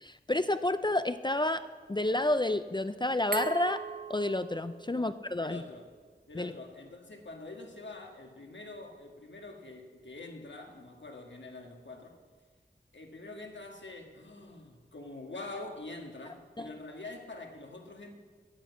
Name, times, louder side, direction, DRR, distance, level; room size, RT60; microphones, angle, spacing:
voice 1, 0.0-1.6 1.9-3.8 4.1-5.6 6.4-6.5 16.6-16.7, left 1 dB, 25° left, 11 dB, 0.4 m, -30 dB
Glass, 3.3-6.1, right 4 dB, 55° right, 1.1 m, -41 dB
voice 2, 4.9-5.9 6.3-12.2 12.9-18.1, left 2 dB, 85° left, 2 dB, 1.6 m, -45 dB
10.0 x 8.4 x 8.2 m, 1.5 s
wide cardioid pair, 55°, 18 cm